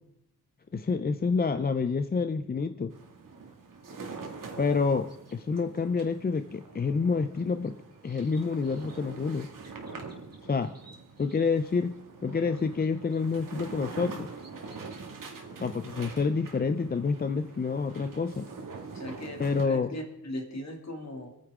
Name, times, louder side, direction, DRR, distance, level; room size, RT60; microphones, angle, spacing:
voice 1, 0.7-2.9 4.6-7.7 8.0-9.5 10.4-10.7 11.2-12.0 12.2-14.3 15.6-18.5 19.4-19.9, left 4 dB, 25° left, 10 dB, 0.5 m, -28 dB
sound 1, 2.9-19.6, right 4 dB, 60° right, 2.3 m, -44 dB
sound 2, 5.1-5.4 7.4-9.0 9.6-11.6 12.3-13.2 13.8-15.0, right 2 dB, 40° right, 3.2 m, -58 dB
voice 2, 18.9-21.3, left 1 dB, 45° left, 2 dB, 2.6 m, -38 dB
27.5 x 9.6 x 3.7 m, 0.81 s
wide cardioid pair, 165°, 37 cm